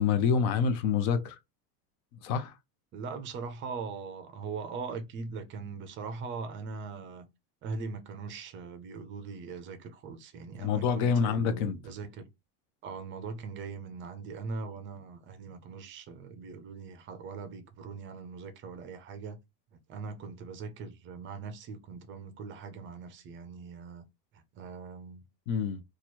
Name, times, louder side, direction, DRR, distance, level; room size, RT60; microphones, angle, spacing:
voice 1, 0.0-1.4 2.2-2.5 10.6-11.8 25.5-25.8, left 6 dB, 55° left, 0.8 m, -27 dB
voice 2, 2.9-7.3 7.6-12.3 12.8-19.4 19.9-24.1 24.3-25.3, right 4 dB, 25° right, 0.5 m, -41 dB
2.9 x 2.4 x 4.3 m
supercardioid pair, 150°, 46 cm